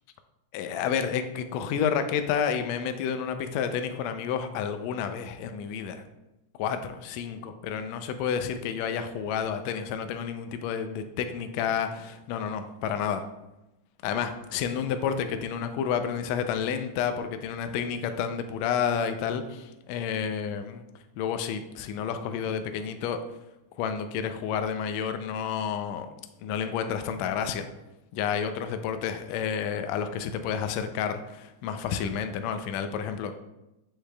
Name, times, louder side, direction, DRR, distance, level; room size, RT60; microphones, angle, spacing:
voice 1, 0.5-6.0 6.6-13.2 14.0-19.4 19.9-20.8 21.2-23.2 23.8-26.1 26.4-27.6 28.1-33.3, left 7 dB, 85° left, 8 dB, 1.6 m, -30 dB
7.4 x 6.6 x 2.3 m, 0.96 s
omnidirectional pair, 3.6 m